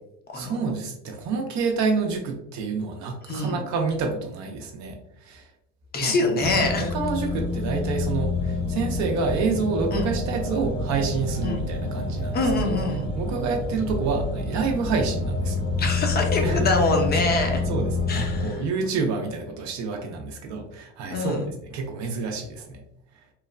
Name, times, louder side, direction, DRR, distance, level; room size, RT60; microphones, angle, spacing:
voice 1, 0.3-5.5 6.0-6.1 6.5-12.8 13.1-15.6 16.4-16.7 17.7-22.8, right 4 dB, 50° right, 3 dB, 0.5 m, -28 dB
voice 2, 3.3-3.6 5.9-6.9 9.9-10.1 11.4-11.6 12.3-13.1 15.8-17.6 18.1-18.6 21.1-21.5, left 2 dB, 25° left, 3 dB, 0.6 m, -25 dB
sound 1, 6.4-18.5, left 2 dB, 60° left, 1.3 m, -28 dB
3.0 x 2.1 x 2.4 m, 0.77 s
supercardioid pair, 105°, 37 cm